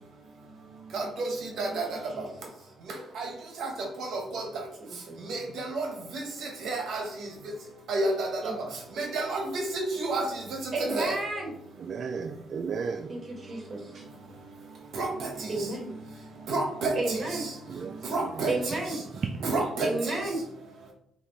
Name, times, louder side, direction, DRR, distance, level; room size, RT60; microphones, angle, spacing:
voice 1, 0.9-1.9 3.2-3.3 3.6-3.7 4.1-4.4 5.3-5.9 6.1-6.2 6.6-7.0 7.9-8.3 9.0-10.3 10.8-11.2 14.9-15.3 16.5-17.5 18.1-18.5 19.4-20.1, right 2 dB, 70° right, 2 dB, 0.8 m, -30 dB
voice 2, 2.1-2.5 4.8-5.2 8.4-8.6 10.7-11.5 13.1-13.9 15.5-15.9 16.9-17.5 18.5-19.0 19.8-20.4, right 2 dB, 35° right, 0 dB, 1.5 m, -32 dB
voice 3, 11.8-13.2 13.9-14.0 17.7-18.4 19.2-19.6, right 5 dB, 55° right, 6 dB, 0.3 m, -34 dB
5.4 x 2.4 x 3.1 m, 0.74 s
cardioid pair, 80°, 0 cm